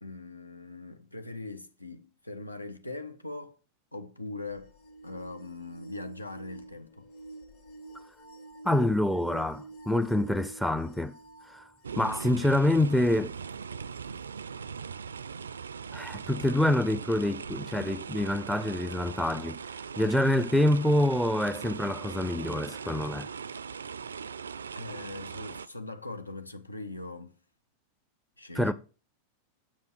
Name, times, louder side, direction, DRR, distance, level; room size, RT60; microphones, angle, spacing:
voice 1, 0.0-3.6 3.9-4.7 5.0-7.1 24.7-27.3 28.4-28.7, left 2 dB, 85° left, 0.8 m, -41 dB
sound 1, 4.5-12.1 12.8-12.9 13.9-14.0, right 2 dB, 45° left, 1.8 m, -48 dB
voice 2, 8.6-11.2 11.5-11.6 12.0-13.3 15.9-19.6 20.0-23.3 28.6-28.7, left 1 dB, 5° left, 0.5 m, -26 dB
sound 2, 11.8-25.7, right 6 dB, 70° right, 0.3 m, -40 dB
7.8 x 7.3 x 4.5 m
figure-of-eight pair, 90°, 0 cm